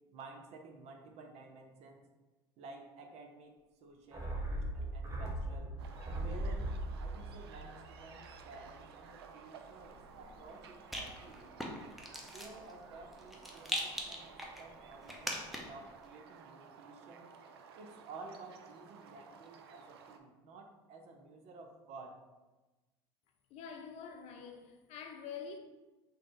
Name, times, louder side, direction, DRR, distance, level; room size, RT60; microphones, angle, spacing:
voice 1, 0.1-2.0 2.6-5.8 6.1-6.7 7.0-11.6 12.3-17.3 17.7-22.2, right 3 dB, 55° right, 0.7 m, -53 dB
sound 1, 4.1-8.7 9.0-9.1, right 1 dB, 25° right, 1.2 m, -39 dB
sound 2, 5.8-20.2, right 6 dB, 85° right, 0.4 m, -55 dB
Rattle, 9.8-15.9, equal, ahead, 0.8 m, -43 dB
voice 2, 23.5-25.6, left 6 dB, 55° left, 0.6 m, -46 dB
3.6 x 2.8 x 3.8 m
hypercardioid pair, 80°, 13 cm